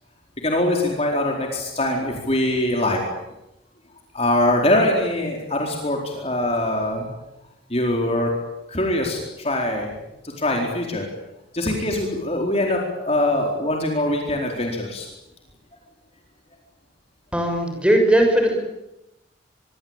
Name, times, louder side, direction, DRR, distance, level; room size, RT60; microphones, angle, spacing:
voice 1, 0.4-3.0 4.1-7.1 7.7-8.3 8.7-9.9 10.2-11.0 11.5-15.1, left 1 dB, 30° left, 1 dB, 4.3 m, -23 dB
voice 2, 17.3-18.6, right 1 dB, 5° right, 3 dB, 6.4 m, -18 dB
25.5 x 23.5 x 9.1 m, 0.93 s
head